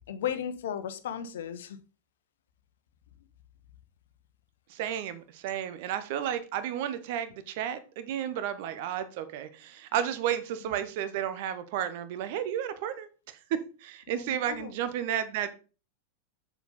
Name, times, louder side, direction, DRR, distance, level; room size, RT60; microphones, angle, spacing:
voice 1, 0.1-1.8 5.5-5.6 14.1-14.7, left 9 dB, 60° left, 0.9 m, -35 dB
voice 2, 4.7-15.5, right 10 dB, 50° right, 1.0 m, -32 dB
7.0 x 7.0 x 4.1 m
figure-of-eight pair, 90°, 0 cm